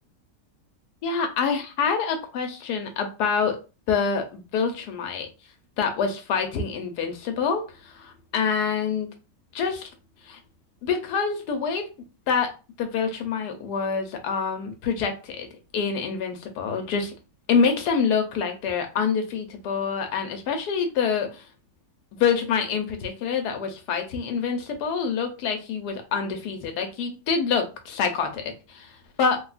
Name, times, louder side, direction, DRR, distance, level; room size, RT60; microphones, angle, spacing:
voice 1, 1.0-3.6 3.9-5.3 5.8-9.1 9.5-9.9 10.2-10.4 10.8-11.9 12.3-12.5 12.8-15.5 15.7-17.1 17.5-21.4 22.2-29.4, left 6 dB, 75° left, 5 dB, 1.2 m, -26 dB
3.3 x 2.3 x 2.4 m, 0.30 s
omnidirectional pair, 1.8 m